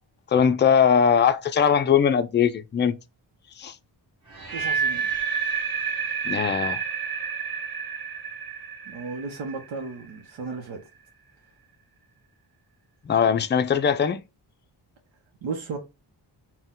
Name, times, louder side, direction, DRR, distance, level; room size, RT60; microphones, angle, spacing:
voice 1, 0.3-2.9 3.6-3.7 6.2-6.8 13.1-14.2, left 7 dB, 25° left, 0.4 m, -20 dB
sound 1, 4.3-10.3, right 6 dB, 50° right, 1.7 m, -29 dB
voice 2, 4.5-5.1 8.9-10.8 15.4-15.8, right 4 dB, 85° right, 0.8 m, -34 dB
4.2 x 2.2 x 3.6 m
cardioid pair, 85°, 45 cm